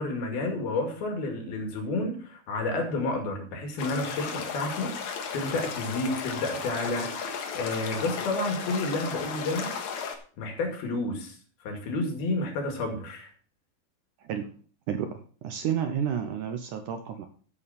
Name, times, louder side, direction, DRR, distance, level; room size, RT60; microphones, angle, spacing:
voice 1, 0.0-7.1 7.5-9.7 10.4-11.4 11.6-13.3, left 2 dB, 75° left, 3 dB, 4.2 m, -30 dB
sound 1, 3.8-10.2, left 6 dB, 60° left, 2.5 m, -35 dB
voice 2, 14.2-14.6 14.9-17.3, right 8 dB, 70° right, 7 dB, 2.0 m, -31 dB
14.0 x 8.0 x 4.3 m, 0.42 s
omnidirectional pair, 4.4 m